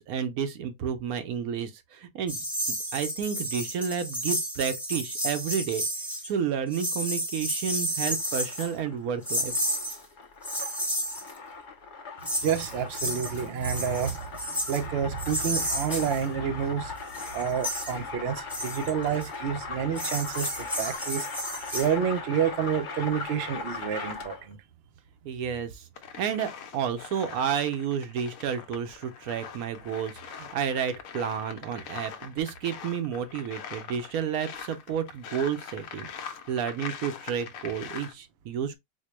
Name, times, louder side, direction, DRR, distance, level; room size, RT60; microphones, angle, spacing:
voice 1, 0.0-2.4 2.9-5.8 6.2-9.5 25.2-25.9 26.2-38.8, right 7 dB, 90° right, 1.2 m, -31 dB
sound 1, 2.3-6.3 6.7-8.7 9.3-10.0 10.4-11.3 12.2-14.8 15.2-16.2 16.9-17.9 18.5-19.3 20.0-21.9, equal, ahead, 0.7 m, -32 dB
sound 2, 7.9-24.5, left 4 dB, 45° left, 0.7 m, -39 dB
voice 2, 12.2-14.2 14.5-16.9 17.3-21.3 21.7-24.6, right 8 dB, 60° right, 0.7 m, -29 dB
sound 3, 26.0-38.1, left 7 dB, 75° left, 1.0 m, -42 dB
4.3 x 2.2 x 3.0 m
omnidirectional pair, 1.5 m